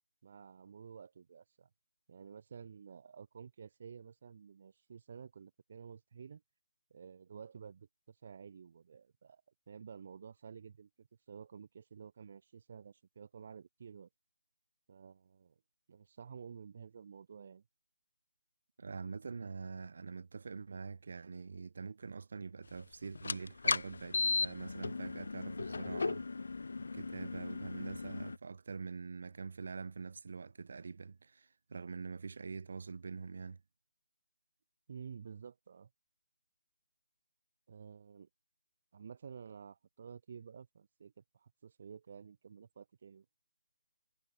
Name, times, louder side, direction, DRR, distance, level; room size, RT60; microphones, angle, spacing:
voice 1, 0.2-1.7 2.1-6.4 6.9-9.4 9.7-14.1 14.9-15.6 15.9-17.6 34.9-35.9 37.7-38.3 38.9-43.2, right 6 dB, 40° right, 2.9 m, -52 dB
voice 2, 18.8-26.5 26.9-33.6, right 5 dB, 55° right, 3.1 m, -45 dB
sound 1, 23.1-28.4, left 4 dB, 70° left, 0.4 m, -36 dB
hypercardioid pair, 170°, 0 cm